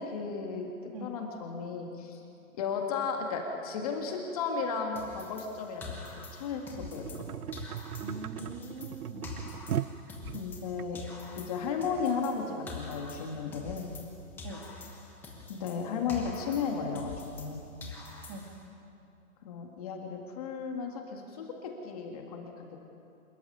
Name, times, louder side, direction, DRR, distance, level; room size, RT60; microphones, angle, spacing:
voice 1, 0.0-2.2 2.5-7.3 10.3-11.0 11.3-13.9 15.5-17.6 19.4-22.8, left 5 dB, 25° left, 2 dB, 1.9 m, -35 dB
sound 1, 5.0-7.3 7.5-10.7 10.9-14.1 14.4-17.5 17.8-18.7, left 3 dB, 5° left, 1.1 m, -45 dB
sound 2, 7.0-10.9 11.6-11.7, right 9 dB, 80° right, 0.8 m, -37 dB
voice 2, 8.0-9.4 14.4-14.6 18.3-18.5, right 2 dB, 25° right, 2 dB, 2.3 m, -43 dB
26.5 x 14.5 x 9.5 m, 2.7 s
hypercardioid pair, 160°, 44 cm